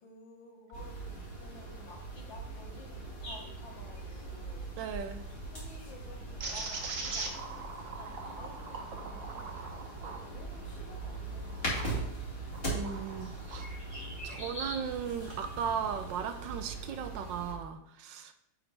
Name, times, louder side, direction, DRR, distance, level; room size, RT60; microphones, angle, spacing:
voice 1, 0.0-4.7 5.4-7.4 7.9-12.3, left 2 dB, 75° left, 1 dB, 2.0 m, -53 dB
sound 1, 0.7-17.5, right 2 dB, 30° left, 2.4 m, -40 dB
voice 2, 4.8-5.2 12.7-13.7 14.2-18.3, right 7 dB, 75° right, 8 dB, 1.3 m, -37 dB
sound 2, 6.4-12.0 12.5-13.7, right 4 dB, 50° right, 1.2 m, -42 dB
9.6 x 5.0 x 3.3 m, 0.75 s
omnidirectional pair, 2.1 m